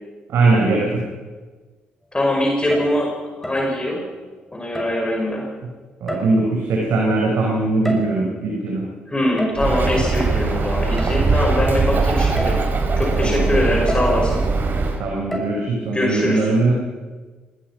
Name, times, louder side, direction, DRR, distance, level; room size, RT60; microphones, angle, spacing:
voice 1, 0.3-1.0 6.0-8.9 13.2-13.6 15.0-16.7, right 3 dB, 60° right, -1 dB, 4.3 m, -20 dB
voice 2, 2.1-4.0 4.5-5.5 9.1-12.6 13.0-14.4 15.9-16.5, left 1 dB, 20° left, 0 dB, 5.6 m, -22 dB
sound 1, 2.6-3.0 3.4-3.7 4.7-5.1 6.1-6.6 7.6-8.3 9.4-9.7 11.0-11.1 11.7-11.8 12.4-12.7 13.9-14.2 15.3-15.5, right 1 dB, 5° left, 6.4 m, -29 dB
Bird, 9.6-15.0, right 3 dB, 45° right, 3.4 m, -20 dB
24.5 x 19.0 x 5.9 m, 1.4 s
figure-of-eight pair, 40°, 5 cm